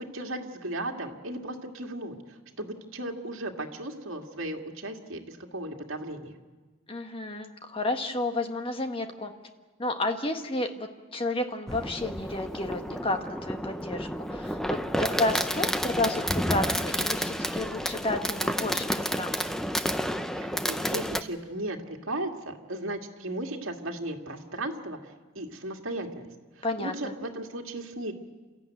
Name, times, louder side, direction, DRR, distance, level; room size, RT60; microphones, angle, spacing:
voice 1, 0.0-6.3 20.4-25.0 25.4-26.3 26.6-28.1, right 1 dB, 70° right, 2 dB, 2.1 m, -36 dB
voice 2, 6.9-9.3 9.8-19.6 26.6-26.9, left 2 dB, 25° left, 6 dB, 1.4 m, -31 dB
Fireworks, 11.7-21.2, equal, ahead, 0.7 m, -30 dB
29.0 x 14.0 x 9.2 m, 1.3 s
head